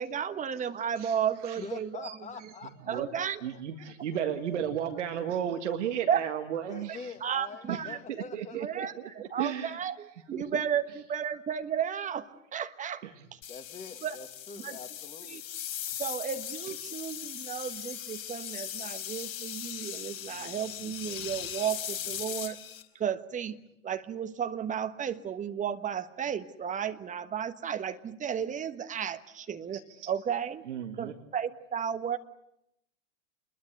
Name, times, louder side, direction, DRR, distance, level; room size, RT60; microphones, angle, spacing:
voice 1, 0.0-2.1 2.9-3.4 4.2-4.3 6.1-6.2 6.9-8.0 8.5-13.4 14.0-14.2 14.6-14.8 15.3-15.4 16.0-22.6 22.9-23.6 23.8-30.6 31.0-32.2, right 8 dB, 20° right, 9 dB, 1.3 m, -33 dB
voice 2, 1.6-4.2 6.7-8.9 13.5-15.4, left 5 dB, 20° left, 7 dB, 2.2 m, -45 dB
voice 3, 3.4-7.1 7.7-7.8 8.3-9.8 10.3-10.4 30.0-30.1 30.7-31.2, right 9 dB, 65° right, 7 dB, 1.9 m, -34 dB
sound 1, 13.4-22.8, left 10 dB, 35° left, 4.1 m, -39 dB
27.5 x 21.5 x 8.1 m, 0.83 s
figure-of-eight pair, 100°, 39 cm